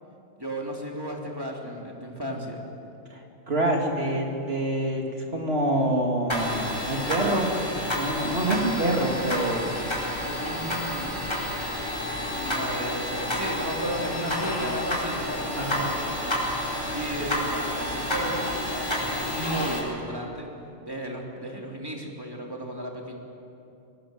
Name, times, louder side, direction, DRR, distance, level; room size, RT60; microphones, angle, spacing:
voice 1, 0.4-2.6 7.2-7.8 8.5-9.0 10.2-11.4 12.2-16.4 16.9-20.5 20.8-23.1, right 1 dB, 15° right, -1 dB, 3.1 m, -34 dB
voice 2, 3.1-7.5 8.0-9.7 15.5-15.9, right 1 dB, 45° right, 1 dB, 3.0 m, -26 dB
sound 1, 6.3-19.8, left 1 dB, 20° left, 4.7 m, -30 dB
24.5 x 18.5 x 7.8 m, 2.7 s
omnidirectional pair, 1.4 m